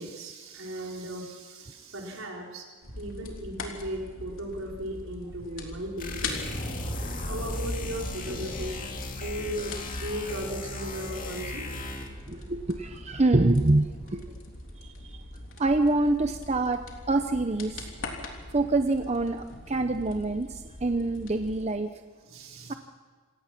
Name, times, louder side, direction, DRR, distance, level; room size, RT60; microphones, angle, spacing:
voice 1, 0.0-2.7 3.0-6.4 7.2-8.8 9.2-11.7 22.3-22.8, right 1 dB, 80° right, 0 dB, 4.5 m, -36 dB
sound 1, 2.8-21.7, left 2 dB, 75° left, 3.3 m, -42 dB
sound 2, 3.6-4.5 4.8-14.3, equal, 15° left, 4.5 m, -44 dB
sound 3, 6.0-12.2, left 2 dB, 40° left, 2.3 m, -36 dB
voice 2, 12.3-14.4 14.8-15.2 15.6-16.8 17.1-17.9 18.5-21.9 22.7-22.8, right 2 dB, 30° right, 7 dB, 0.8 m, -26 dB
27.5 x 17.5 x 6.0 m, 1.5 s
head